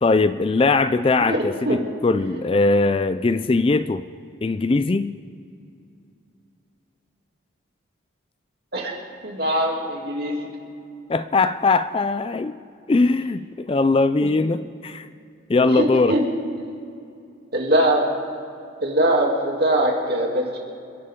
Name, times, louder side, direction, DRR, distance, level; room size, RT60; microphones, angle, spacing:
voice 1, 0.0-4.0 4.4-5.2 11.1-12.6 12.9-15.1 15.5-16.2, left 3 dB, 25° left, 13 dB, 0.3 m, -20 dB
voice 2, 1.2-1.8 8.7-8.9 9.2-10.5 14.2-14.3 15.6-16.2 17.5-18.0 18.8-20.6, right 1 dB, 50° right, -1 dB, 2.7 m, -22 dB
28.5 x 11.0 x 3.7 m, 2.5 s
head